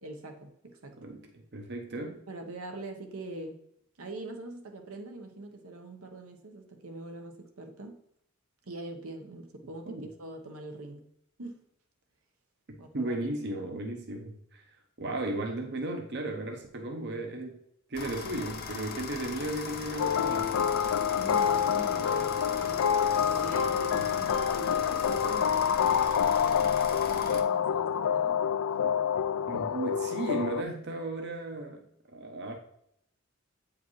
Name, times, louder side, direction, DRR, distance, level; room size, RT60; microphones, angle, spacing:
voice 1, 0.0-1.0 2.3-3.6 4.0-8.0 8.6-11.1 11.4-11.6 12.8-13.2 21.0-22.9 23.3-28.4, right 2 dB, 85° right, 1.1 m, -43 dB
voice 2, 1.0-2.2 9.9-10.0 12.9-14.7 15.0-17.6 17.9-20.6 29.5-32.6, right 2 dB, 50° right, 0.8 m, -35 dB
sound 1, 17.9-27.4, left 5 dB, 45° left, 0.8 m, -39 dB
sound 2, 20.0-30.6, left 8 dB, 85° left, 0.3 m, -27 dB
8.3 x 5.0 x 3.1 m
head